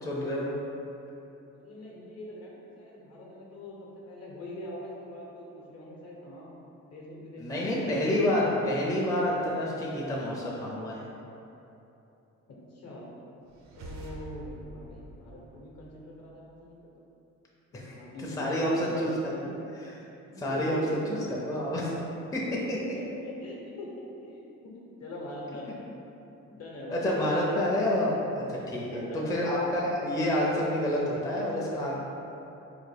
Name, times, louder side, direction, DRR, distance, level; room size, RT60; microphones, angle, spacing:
voice 1, 0.0-0.5 7.4-11.0 17.7-18.0 18.4-20.0 20.4-20.8 21.1-21.2 21.5-21.9 22.3-22.8 26.9-32.0, left 1 dB, 10° left, -5 dB, 0.5 m, -28 dB
voice 2, 1.5-6.5 6.9-7.9 12.5-13.1 13.8-16.9 17.7-19.3 20.3-21.2 22.5-25.8 26.5-27.1 28.5-29.2, left 1 dB, 55° left, -3 dB, 0.8 m, -43 dB
sound 1, 13.5-16.2, right 1 dB, 60° right, 0.5 m, -46 dB
3.5 x 2.1 x 3.3 m, 2.9 s
cardioid pair, 90°, 30 cm